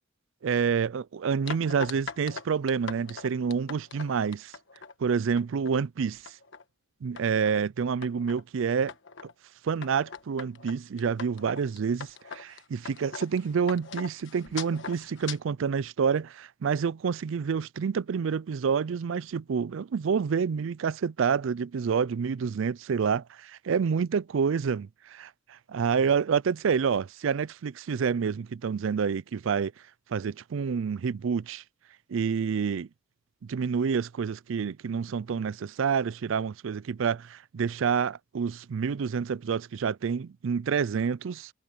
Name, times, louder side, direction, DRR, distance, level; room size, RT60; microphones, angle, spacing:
voice 1, 0.4-4.5 5.0-6.3 7.0-8.9 9.6-29.7 30.1-31.6 32.1-32.9 33.4-41.5, right 6 dB, 65° right, 0.4 m, -28 dB
sound 1, 1.5-4.9 5.4-5.8 6.1-6.6 7.2-7.6 8.0-8.4 8.9-9.3 9.8-15.4, left 6 dB, 60° left, 1.3 m, -41 dB
head